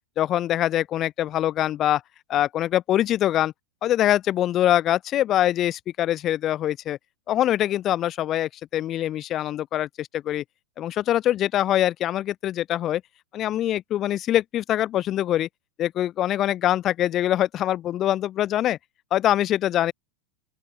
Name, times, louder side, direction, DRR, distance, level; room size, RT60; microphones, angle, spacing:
voice 1, 0.2-2.0 2.3-3.5 3.8-7.0 7.3-10.4 10.8-13.0 13.3-15.5 15.8-18.8 19.1-19.9, left 12 dB, 30° left, 5.4 m, -23 dB
open air
figure-of-eight pair, 90°, 0 cm